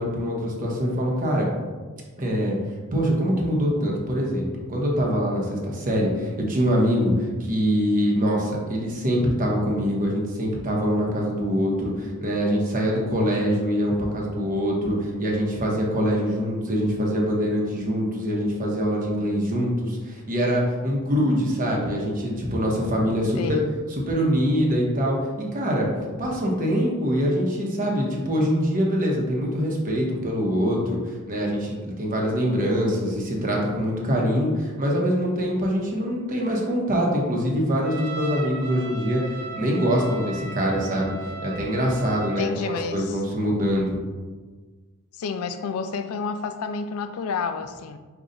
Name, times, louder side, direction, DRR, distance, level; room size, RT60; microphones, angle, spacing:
voice 1, 0.0-1.5 2.2-2.6 2.9-23.6 23.9-41.1 41.4-44.0, equal, 35° right, -2 dB, 0.9 m, -24 dB
voice 2, 23.3-23.7 42.4-43.2 45.2-48.0, left 5 dB, 70° left, 8 dB, 0.3 m, -30 dB
Trumpet, 37.8-42.6, right 3 dB, 80° right, 1.1 m, -37 dB
5.4 x 2.3 x 3.8 m, 1.4 s
head